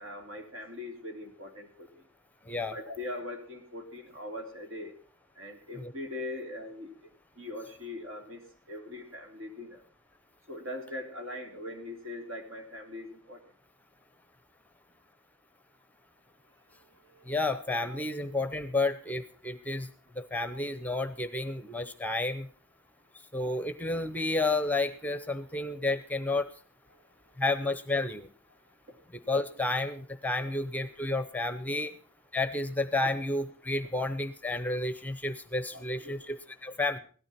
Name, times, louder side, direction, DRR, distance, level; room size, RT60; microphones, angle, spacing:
voice 1, 0.0-1.9 2.7-4.9 5.4-6.9 7.4-8.4 8.7-9.8 10.5-13.4 35.7-36.2, left 1 dB, 65° right, 4 dB, 3.5 m, -41 dB
voice 2, 17.3-19.9 20.2-22.5 23.3-26.5 27.4-28.3 29.1-31.9 32.3-37.0, left 2 dB, 5° left, 12 dB, 0.8 m, -31 dB
17.0 x 13.5 x 4.3 m, 0.42 s
head